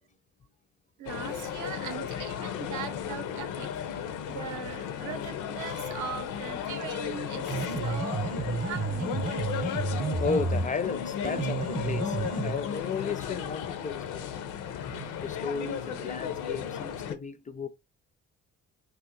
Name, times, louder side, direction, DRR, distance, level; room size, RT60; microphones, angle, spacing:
voice 1, 1.0-3.7 4.1-8.3 8.6-9.3 9.9-10.2 14.9-15.2, right 8 dB, 75° right, 0.6 m, -40 dB
sound 1, 1.1-17.2, left 8 dB, 90° left, 0.6 m, -35 dB
sound 2, 7.5-10.8 11.2-12.5, right 3 dB, 30° right, 0.6 m, -31 dB
voice 2, 10.2-14.3 14.8-14.9 15.2-17.7, left 4 dB, 25° left, 0.4 m, -34 dB
2.9 x 2.1 x 3.7 m
cardioid pair, 90°, 30 cm